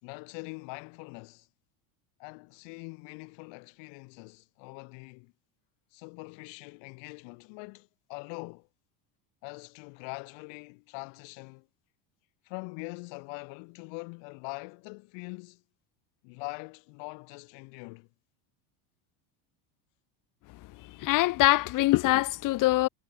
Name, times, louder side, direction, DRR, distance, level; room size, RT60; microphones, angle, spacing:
voice 1, 0.0-1.5 2.2-5.3 5.9-8.7 9.4-11.7 12.4-15.6 16.2-18.1, left 34 dB, 70° left, 5.0 m, -43 dB
voice 2, 21.0-22.9, left 18 dB, 45° left, 0.9 m, -23 dB
supercardioid pair, 125°, 46 cm